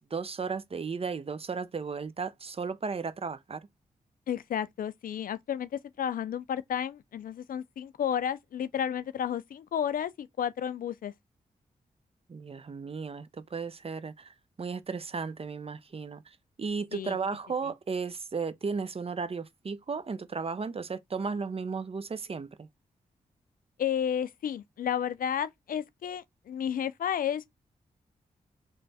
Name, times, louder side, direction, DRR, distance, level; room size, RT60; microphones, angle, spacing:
voice 1, 0.0-3.6 12.3-16.2 16.6-22.7, right 5 dB, 40° right, 0.5 m, -35 dB
voice 2, 4.3-11.1 16.9-17.2 23.8-27.5, left 9 dB, 65° left, 0.4 m, -32 dB
3.2 x 2.2 x 4.0 m
supercardioid pair, 40°, 16 cm